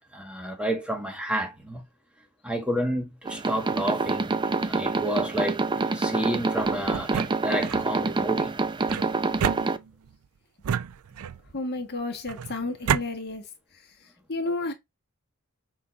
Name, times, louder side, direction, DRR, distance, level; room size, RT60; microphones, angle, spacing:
voice 1, 0.1-1.8 2.4-4.3 4.6-8.5, right 1 dB, 5° right, 1.3 m, -30 dB
sound 1, 3.2-9.8, right 3 dB, 20° right, 0.5 m, -27 dB
sound 2, 6.9-7.9 8.9-10.1 10.6-11.5 12.3-13.1, right 8 dB, 90° right, 0.4 m, -30 dB
voice 2, 11.5-13.4 14.3-14.7, left 2 dB, 50° left, 1.5 m, -31 dB
7.2 x 2.6 x 5.2 m
head